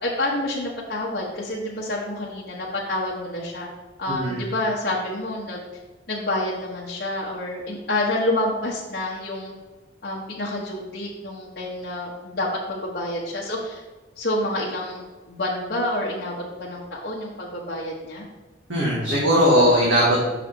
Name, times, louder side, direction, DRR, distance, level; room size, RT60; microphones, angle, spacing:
voice 1, 0.0-3.7 4.0-5.7 6.1-9.5 10.0-13.8 14.2-18.3, left 1 dB, 55° left, -5 dB, 1.0 m, -28 dB
voice 2, 4.1-4.4 18.7-20.2, equal, 85° right, -6 dB, 1.7 m, -19 dB
5.9 x 4.1 x 5.9 m, 1.2 s
head